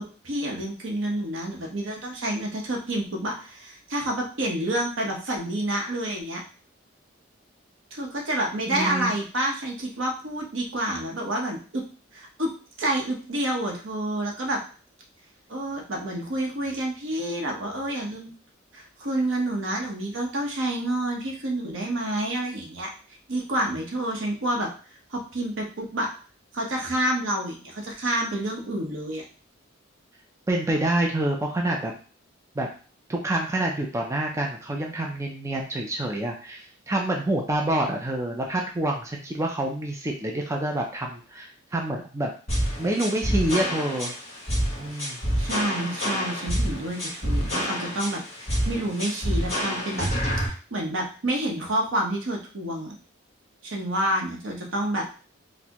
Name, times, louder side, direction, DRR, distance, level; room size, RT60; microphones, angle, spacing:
voice 1, 0.0-6.4 7.9-11.8 12.1-12.5 12.8-14.6 15.5-18.3 18.7-22.9 23.3-24.7 25.1-26.1 26.5-29.2 45.4-50.1 50.5-53.0 53.6-55.0, right 1 dB, 75° right, 0 dB, 0.9 m, -28 dB
voice 2, 8.7-9.1 30.5-31.9 32.6-32.7 33.1-42.3 42.8-44.1 44.8-45.2, right 1 dB, 15° right, 0 dB, 0.4 m, -27 dB
sound 1, 42.5-50.5, equal, 35° left, 1.3 m, -27 dB
4.2 x 2.1 x 2.8 m, 0.38 s
head